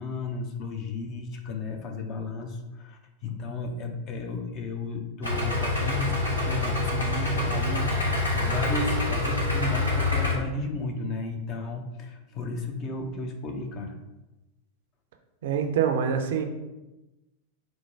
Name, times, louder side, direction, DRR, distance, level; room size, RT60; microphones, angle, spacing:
voice 1, 0.0-14.0, left 2 dB, 35° left, 4 dB, 0.6 m, -33 dB
Idling, 5.2-10.3, left 3 dB, 80° left, 1.0 m, -26 dB
voice 2, 15.4-16.4, right 7 dB, 55° right, 5 dB, 0.4 m, -25 dB
4.3 x 2.1 x 4.5 m, 1.0 s
figure-of-eight pair, 90°, 0 cm